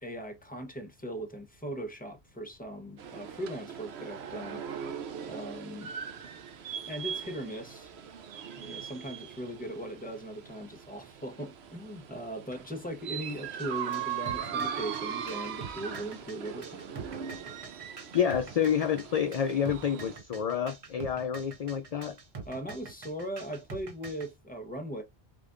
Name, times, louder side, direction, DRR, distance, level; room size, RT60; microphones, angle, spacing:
voice 1, 0.0-4.6 5.3-5.9 6.9-7.9 8.5-16.9 22.4-25.0, right 1 dB, 10° left, 1.0 m, -39 dB
sound 1, 3.0-20.2, right 8 dB, 85° right, 1.0 m, -40 dB
sound 2, 13.6-24.3, right 5 dB, 35° right, 0.9 m, -45 dB
voice 2, 18.1-22.1, left 8 dB, 50° left, 0.5 m, -28 dB
5.1 x 3.5 x 2.5 m
omnidirectional pair, 1.0 m